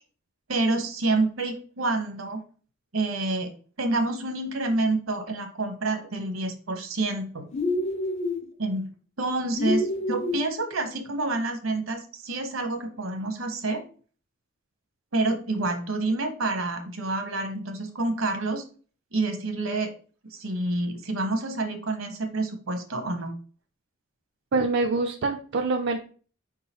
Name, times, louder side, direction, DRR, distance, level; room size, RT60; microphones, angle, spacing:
voice 1, 0.5-2.4 2.9-3.5 3.8-7.4 8.6-8.9 9.2-13.8 15.1-18.6 19.1-19.9 20.3-23.3, right 2 dB, 75° right, 5 dB, 1.0 m, -28 dB
sound 1, 7.5-8.4 9.6-10.5, left 2 dB, 35° left, 0.5 m, -27 dB
voice 2, 24.5-26.0, right 3 dB, 55° right, 4 dB, 0.4 m, -25 dB
4.7 x 3.7 x 2.9 m, 0.40 s
head